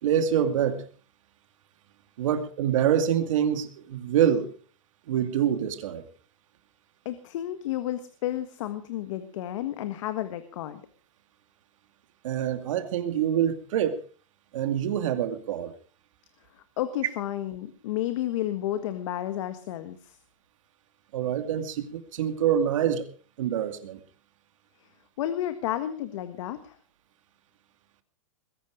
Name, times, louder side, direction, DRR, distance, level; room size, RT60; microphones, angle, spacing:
voice 1, 0.0-0.8 2.2-4.5 5.1-6.1 12.2-14.0 14.5-15.7 21.1-23.1 23.4-24.0, right 9 dB, 75° right, 8 dB, 2.5 m, -26 dB
voice 2, 7.0-10.8 16.6-20.2 25.2-26.8, left 12 dB, 70° left, 10 dB, 1.6 m, -31 dB
21.5 x 11.0 x 5.0 m, 0.42 s
hypercardioid pair, 115°, 17 cm